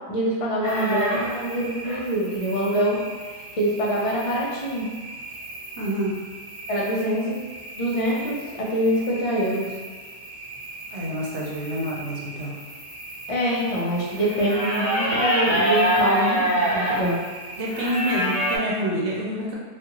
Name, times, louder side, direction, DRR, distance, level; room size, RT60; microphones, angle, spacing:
voice 1, 0.1-3.0 3.6-4.9 6.7-7.4 7.8-9.7 13.3-17.2, right 1 dB, 40° left, -4 dB, 0.5 m, -25 dB
sound 1, 0.6-18.6, right 1 dB, 35° right, 1.2 m, -29 dB
voice 2, 5.8-6.1 10.9-12.5 17.6-19.5, equal, 85° right, -3 dB, 1.0 m, -27 dB
2.5 x 2.4 x 2.9 m, 1.5 s
omnidirectional pair, 1.1 m